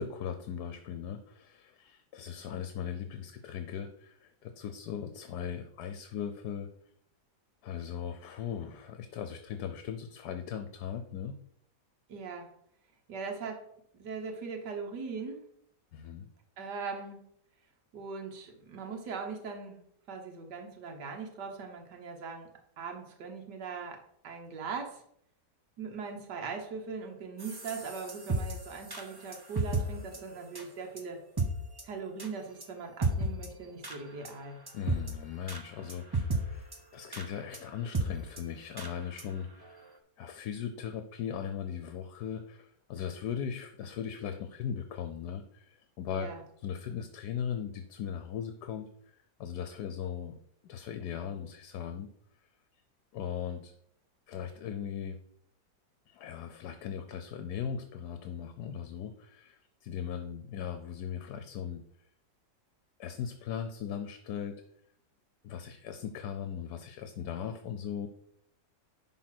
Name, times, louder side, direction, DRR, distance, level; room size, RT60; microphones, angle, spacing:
voice 1, 0.0-6.7 7.6-11.4 15.9-16.3 34.7-39.8 40.2-46.3 46.6-50.4 50.6-52.1 53.1-53.7 54.3-55.2 56.1-61.8 63.0-64.6 65.4-68.1, left 8 dB, 75° left, 9 dB, 1.2 m, -38 dB
voice 2, 12.1-12.5 13.1-13.6 14.0-15.4 16.6-17.2 17.9-19.8 20.1-22.5 22.8-25.0 25.8-31.2 31.8-34.6 46.1-46.4, right 5 dB, 75° right, 2 dB, 1.9 m, -40 dB
sound 1, 27.4-29.8 30.1-30.2 30.6-30.7 31.0-31.1 31.4-31.5 31.8-31.9 32.2-32.3 32.6-32.7 33.0-33.5 33.8-34.0 34.2-34.3 34.7-35.1 35.5-35.6 35.9-36.4 36.7-36.8 37.1-37.3 37.5-37.6 37.9-38.1 38.4-38.5 38.8-38.9 39.2-39.3 39.7-39.8, right 3 dB, 20° right, 0.8 m, -32 dB
10.5 x 3.9 x 5.9 m, 0.69 s
omnidirectional pair, 1.8 m